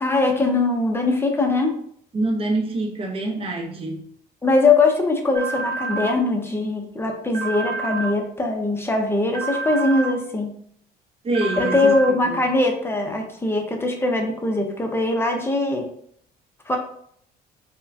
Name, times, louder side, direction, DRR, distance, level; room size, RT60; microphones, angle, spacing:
voice 1, 0.0-1.8 4.4-10.5 11.6-15.8 16.7-16.8, left 2 dB, 15° left, 2 dB, 0.6 m, -21 dB
voice 2, 2.1-4.1 11.2-12.4, right 2 dB, 35° right, 1 dB, 0.7 m, -26 dB
sound 1, 5.3-6.1 7.3-8.1 9.3-10.1 11.3-12.1, right 4 dB, 65° right, 1.0 m, -28 dB
4.6 x 2.1 x 2.6 m, 0.65 s
cardioid pair, 110°, 17 cm